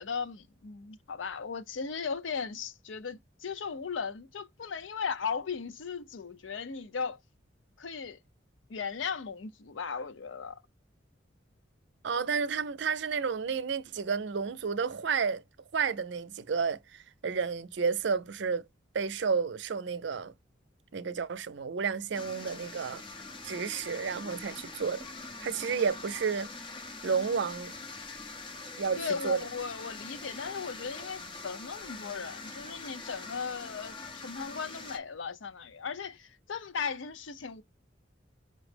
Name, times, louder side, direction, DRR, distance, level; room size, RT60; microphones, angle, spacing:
voice 1, 0.0-7.2 7.8-8.2 8.7-10.6 29.0-37.6, left 5 dB, 80° left, 0.6 m, -37 dB
voice 2, 12.0-15.4 15.7-18.6 18.9-20.3 20.9-23.0 23.4-25.0 25.4-26.5 27.0-27.7 28.8-29.4, right 5 dB, 65° right, 0.5 m, -31 dB
sound 1, 22.1-35.0, left 3 dB, 25° left, 0.7 m, -44 dB
5.3 x 2.0 x 3.2 m
head